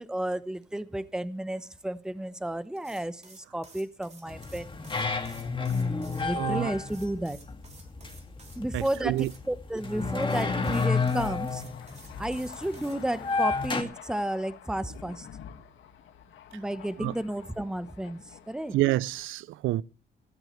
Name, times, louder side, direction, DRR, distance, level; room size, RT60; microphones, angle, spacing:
voice 1, 0.0-4.7 5.7-7.4 8.5-9.2 9.5-11.6 12.2-15.3 16.5-18.8, right 1 dB, 5° right, 0.9 m, -32 dB
sound 1, 2.8-6.3 6.9-9.4 10.2-13.0, right 4 dB, 35° right, 3.3 m, -53 dB
sound 2, 4.3-13.8, left 4 dB, 25° left, 2.2 m, -31 dB
voice 2, 6.3-6.7 8.7-9.3 17.0-17.1 18.7-19.8, right 16 dB, 80° right, 0.5 m, -28 dB
Thunder, 11.2-19.3, left 8 dB, 75° left, 1.8 m, -48 dB
16.0 x 13.5 x 3.2 m
cardioid pair, 90°, 20 cm